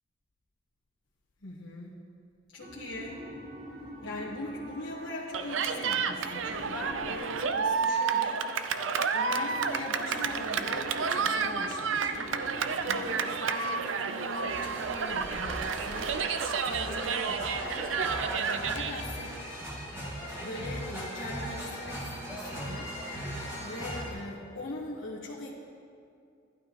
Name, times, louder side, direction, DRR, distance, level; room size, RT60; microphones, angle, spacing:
voice 1, 1.4-1.9 2.5-3.2 4.0-19.4 20.4-22.9 23.2-25.5, left 2 dB, 85° left, -7 dB, 1.2 m, -41 dB
sound 1, 2.6-14.5, equal, 45° right, 1.3 m, -45 dB
Cheering, 5.3-19.0, right 5 dB, 90° right, 0.5 m, -30 dB
sound 2, 14.5-24.1, equal, 15° right, 2.2 m, -39 dB
15.5 x 11.5 x 3.0 m, 2.5 s
head